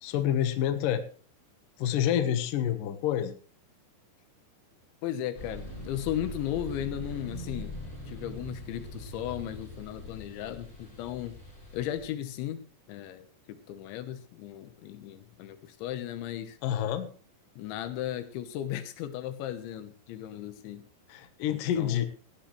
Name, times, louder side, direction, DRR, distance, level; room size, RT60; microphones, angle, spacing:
voice 1, 0.0-1.0 1.8-3.4 16.6-17.1 21.1-22.1, left 10 dB, 65° left, 9 dB, 2.3 m, -28 dB
voice 2, 5.0-7.7 8.1-11.4 11.7-16.6 17.6-20.9 21.5-22.1, left 11 dB, 80° left, 11 dB, 3.4 m, -36 dB
sound 1, 5.4-12.0, equal, 25° left, 6.2 m, -42 dB
18.0 x 13.5 x 3.2 m, 0.39 s
omnidirectional pair, 5.4 m